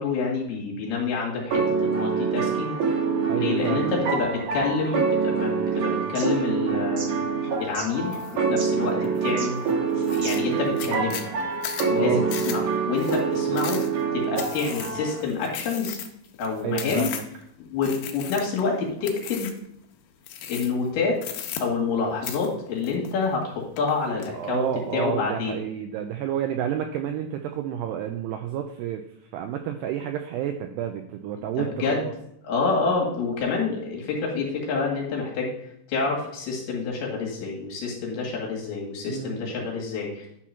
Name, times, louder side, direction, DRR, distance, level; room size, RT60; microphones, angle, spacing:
voice 1, 0.0-3.0 3.3-7.1 7.6-9.6 10.0-11.2 11.8-13.8 14.1-16.0 16.4-17.1 17.6-19.5 20.5-25.6 31.6-32.0 32.4-35.5 35.9-40.3, left 4 dB, 60° left, -2 dB, 3.6 m, -28 dB
sound 1, 1.5-15.2, right 5 dB, 55° right, 2.3 m, -26 dB
voice 2, 3.3-3.9 12.0-12.3 16.6-17.2 24.3-29.0 29.3-32.1 39.1-39.7, right 9 dB, 90° right, 6 dB, 2.3 m, -30 dB
sound 2, 3.6-10.7, right 4 dB, 70° right, 4.0 m, -41 dB
sound 3, 8.1-8.4 8.8-9.3 9.7-9.8 10.0-17.4 17.8-18.7 19.0-19.7 20.2-20.9 21.2-22.0 22.2-23.4 23.8-24.3, left 9 dB, 75° left, 2.9 m, -36 dB
11.0 x 4.4 x 5.7 m, 0.76 s
omnidirectional pair, 5.5 m